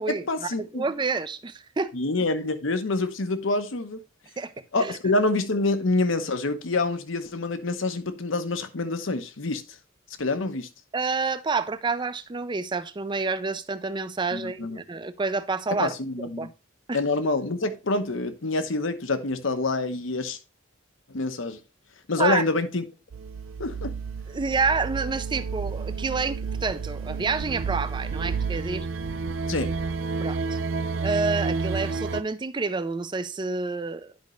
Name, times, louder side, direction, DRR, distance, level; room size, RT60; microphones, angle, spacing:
voice 1, 0.1-0.8 1.9-4.0 4.7-9.6 10.2-10.7 14.3-14.8 15.7-16.5 16.9-20.4 21.1-21.6 22.1-22.8 23.6-23.9 29.5-29.7, left 2 dB, 70° left, 0.9 m, -26 dB
voice 2, 0.7-1.9 4.4-4.5 4.8-5.0 10.9-15.9 16.4-16.5 16.9-17.0 22.2-22.4 24.3-28.9 30.2-30.6 31.0-34.1, right 4 dB, 25° right, 0.5 m, -28 dB
sound 1, 23.1-32.2, right 4 dB, 80° right, 0.5 m, -30 dB
10.5 x 5.2 x 3.1 m
head